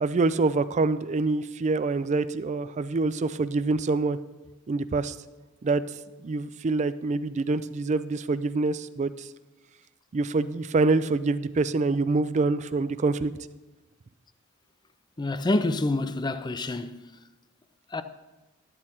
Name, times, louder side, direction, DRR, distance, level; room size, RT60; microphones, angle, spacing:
voice 1, 0.0-4.2 4.7-5.2 5.6-5.8 6.2-9.3 10.1-13.3, right 3 dB, 35° right, 0.4 m, -25 dB
voice 2, 15.2-17.0 17.9-18.0, left 2 dB, 20° left, 0.5 m, -27 dB
12.0 x 8.5 x 4.3 m
head